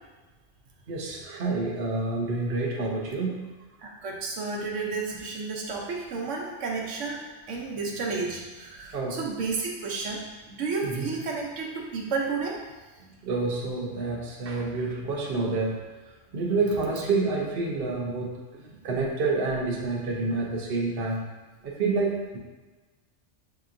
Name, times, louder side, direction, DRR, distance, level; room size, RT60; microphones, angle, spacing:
voice 1, 0.9-3.5 8.9-9.2 10.8-11.1 13.2-15.8 16.3-18.3 18.6-21.3 21.6-22.4, right 3 dB, 55° right, -2 dB, 0.9 m, -28 dB
voice 2, 3.8-7.2 7.5-10.2 10.5-12.6, right 4 dB, 80° right, -1 dB, 1.0 m, -31 dB
6.2 x 2.9 x 2.5 m, 1.2 s
omnidirectional pair, 1.3 m